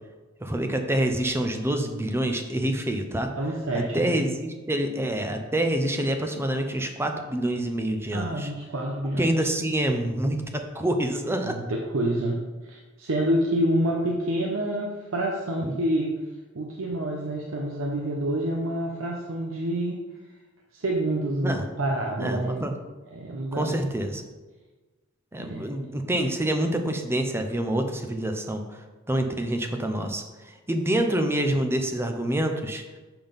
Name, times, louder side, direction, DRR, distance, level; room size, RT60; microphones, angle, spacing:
voice 1, 0.4-3.3 3.9-8.5 9.2-11.6 15.6-15.7 21.4-21.7 22.2-22.7 23.5-24.2 25.3-28.6 29.1-30.2 30.7-32.8, right 1 dB, 10° right, 5 dB, 0.6 m, -26 dB
voice 2, 3.3-4.3 8.1-9.3 11.4-16.1 16.5-20.0 20.7-22.6 23.1-23.9 25.4-25.7, right 1 dB, 85° right, 0 dB, 0.8 m, -28 dB
7.1 x 3.9 x 5.2 m, 1.3 s
head